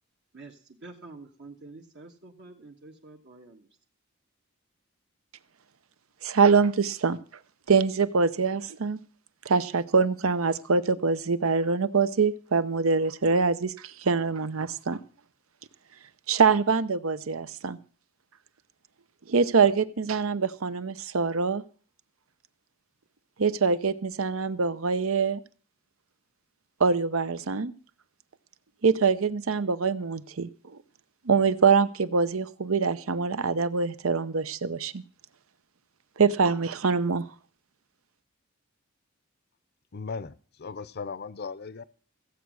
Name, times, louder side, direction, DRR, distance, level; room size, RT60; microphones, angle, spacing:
voice 1, 0.3-3.7, right 3 dB, 55° right, 1.4 m, -47 dB
voice 2, 6.2-7.2 7.7-9.0 9.5-15.0 16.3-17.8 19.3-21.6 23.4-25.4 26.8-27.7 28.8-30.5 31.2-35.0 36.2-37.2, right 5 dB, 75° right, 0.8 m, -24 dB
voice 3, 39.9-41.8, left 4 dB, 50° left, 0.6 m, -37 dB
15.5 x 8.2 x 6.3 m
head